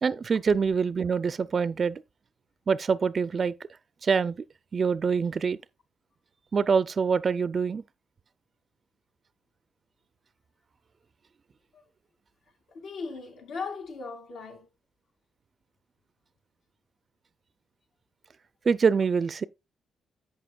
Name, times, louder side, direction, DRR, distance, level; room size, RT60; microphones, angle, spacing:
voice 1, 0.0-2.0 2.7-3.5 4.0-4.4 4.7-5.6 6.5-7.8 18.7-19.4, right 5 dB, 40° right, 0.4 m, -25 dB
voice 2, 12.7-14.7, left 4 dB, 75° left, 2.3 m, -38 dB
11.0 x 8.2 x 2.3 m
cardioid pair, 115°, 0 cm